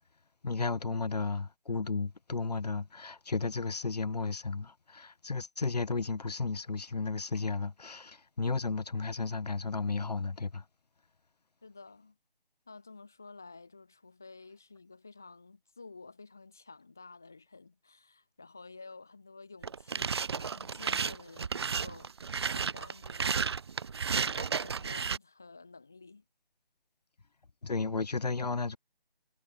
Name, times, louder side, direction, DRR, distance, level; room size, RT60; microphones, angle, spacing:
voice 1, 0.4-10.6 27.6-28.8, left 4 dB, 40° left, 5.9 m, -33 dB
voice 2, 11.6-12.2 12.7-22.1 22.5-23.5 23.8-23.9 24.3-26.2, left 3 dB, 5° left, 0.8 m, -51 dB
sound 1, 19.6-25.2, right 6 dB, 25° right, 2.6 m, -33 dB
figure-of-eight pair, 160°, 30 cm